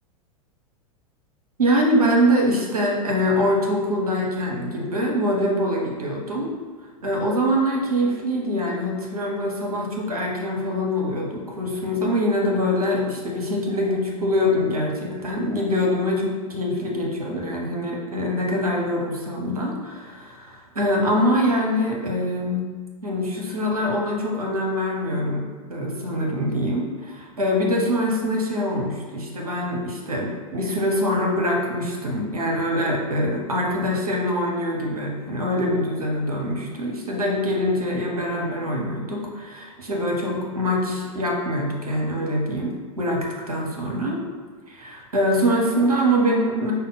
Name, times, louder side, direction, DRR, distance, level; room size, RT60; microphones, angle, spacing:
voice 1, 1.6-6.5 7.0-22.7 23.0-25.4 25.7-44.2 44.7-46.7, equal, 80° right, -1 dB, 0.9 m, -24 dB
5.2 x 2.2 x 4.0 m, 1.4 s
figure-of-eight pair, 90°, 19 cm